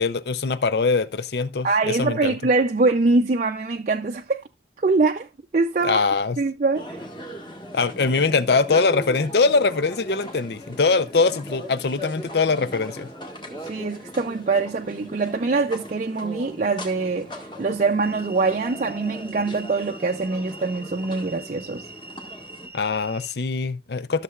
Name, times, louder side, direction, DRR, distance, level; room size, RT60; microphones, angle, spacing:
voice 1, 0.0-2.4 5.8-6.4 7.7-13.1 22.7-24.2, left 4 dB, 60° left, 0.6 m, -22 dB
voice 2, 1.6-4.4 4.8-5.3 5.5-6.0 6.4-7.0 13.6-21.9, right 3 dB, 40° right, 0.5 m, -23 dB
sound 1, 6.7-22.7, equal, 25° left, 1.6 m, -39 dB
sound 2, 18.0-23.3, right 2 dB, 15° right, 0.9 m, -44 dB
14.0 x 6.7 x 2.4 m
head